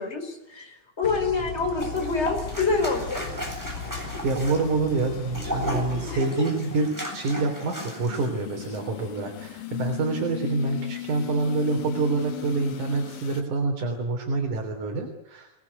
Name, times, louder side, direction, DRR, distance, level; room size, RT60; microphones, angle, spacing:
voice 1, 0.0-3.2 6.1-6.5, left 4 dB, 20° left, 3 dB, 4.9 m, -27 dB
sound 1, 1.0-6.2, left 5 dB, 35° left, 2.7 m, -37 dB
sound 2, 1.8-8.3 8.6-8.8, equal, 5° right, 7.8 m, -35 dB
sound 3, 2.4-13.4, left 13 dB, 90° left, 3.0 m, -39 dB
voice 2, 4.2-15.5, right 3 dB, 65° right, 3 dB, 4.8 m, -27 dB
26.5 x 19.5 x 9.7 m, 0.87 s
omnidirectional pair, 3.8 m